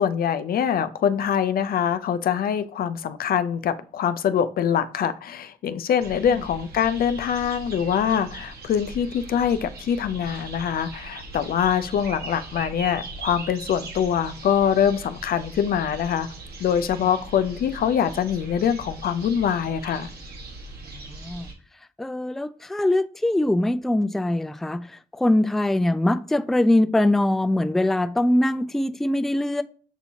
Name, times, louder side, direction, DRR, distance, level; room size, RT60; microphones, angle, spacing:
voice 1, 0.0-16.3 16.6-20.1, left 8 dB, 70° left, 0.4 m, -24 dB
sound 1, 6.0-21.5, right 2 dB, 80° right, 1.4 m, -40 dB
voice 2, 21.1-21.4 22.0-24.9 25.1-29.6, left 1 dB, ahead, 0.3 m, -22 dB
7.0 x 2.7 x 2.7 m
cardioid pair, 65°, 16 cm